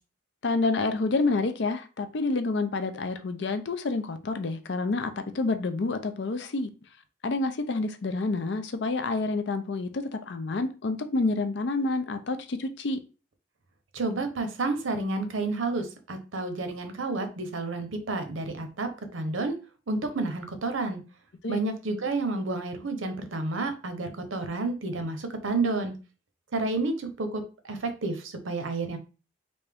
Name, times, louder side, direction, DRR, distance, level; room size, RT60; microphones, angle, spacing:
voice 1, 0.4-6.7 7.2-13.0 21.4-21.6, left 3 dB, 65° left, 0.5 m, -28 dB
voice 2, 13.9-19.5 19.9-21.0 21.5-25.9 26.5-29.0, right 3 dB, 85° right, 0.8 m, -30 dB
3.4 x 2.7 x 3.4 m
head